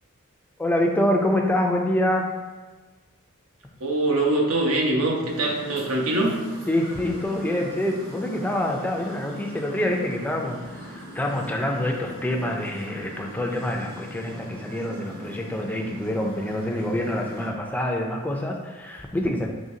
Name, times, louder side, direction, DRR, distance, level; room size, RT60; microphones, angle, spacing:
voice 1, 0.6-2.3 6.7-19.5, left 1 dB, 5° left, 1 dB, 0.3 m, -26 dB
voice 2, 3.8-6.4, right 2 dB, 80° right, 0 dB, 0.8 m, -23 dB
sound 1, 5.3-17.5, equal, 40° right, 1.1 m, -40 dB
5.0 x 3.1 x 2.7 m, 1.3 s
head